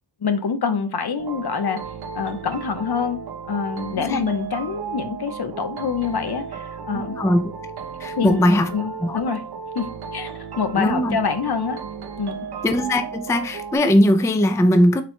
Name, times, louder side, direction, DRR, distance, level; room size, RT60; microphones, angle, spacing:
voice 1, 0.2-1.8 2.1-3.2 3.5-7.1 8.2-8.4 8.7-9.4 9.7-11.8 12.2-12.4, left 6 dB, 65° left, 0.7 m, -26 dB
sound 1, 1.2-13.8, right 6 dB, 65° right, 0.6 m, -34 dB
voice 2, 6.9-7.5 8.0-8.7 9.0-9.2 10.8-11.2 12.6-15.0, left 1 dB, 10° left, 0.3 m, -19 dB
4.2 x 2.1 x 4.3 m
wide cardioid pair, 80°, 42 cm